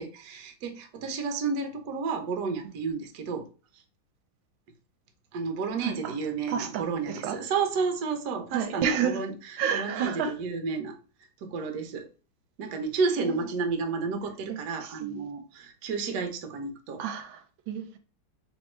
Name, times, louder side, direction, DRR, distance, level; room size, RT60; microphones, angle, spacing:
voice 1, 0.0-3.5 5.3-9.3 9.7-11.0 11.4-12.1 12.6-17.0, right 4 dB, 65° right, 1.2 m, -31 dB
voice 2, 5.8-6.2 6.5-7.4 8.5-9.2 9.6-10.3 13.2-13.4 14.5-15.2 17.0-17.4 17.7-18.0, right 8 dB, 80° right, 1.4 m, -30 dB
3.4 x 3.0 x 4.3 m
omnidirectional pair, 2.1 m